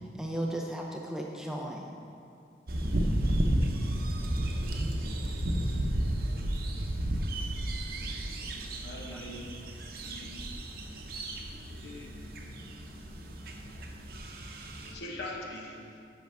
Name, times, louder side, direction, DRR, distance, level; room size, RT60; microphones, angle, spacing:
voice 1, 0.2-1.9 9.1-9.4, right 1 dB, 5° right, 0 dB, 0.4 m, -36 dB
sound 1, 2.7-14.9, right 1 dB, 55° right, 0.7 m, -32 dB
voice 2, 8.8-9.4 10.1-10.4 11.8-12.1 14.8-16.0, left 1 dB, 75° left, -1 dB, 1.1 m, -42 dB
10.5 x 6.3 x 3.4 m, 2.4 s
head